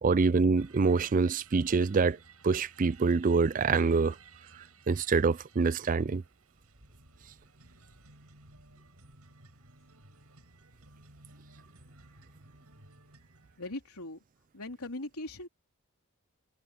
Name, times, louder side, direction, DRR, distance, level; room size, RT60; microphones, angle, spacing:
voice 1, 0.0-2.2 2.4-4.2 4.9-6.2, right 4 dB, 35° right, 0.4 m, -25 dB
sound 1, 0.6-13.6, right 3 dB, 85° right, 7.0 m, -57 dB
voice 2, 13.6-14.2 14.5-15.5, left 2 dB, 80° left, 3.6 m, -39 dB
head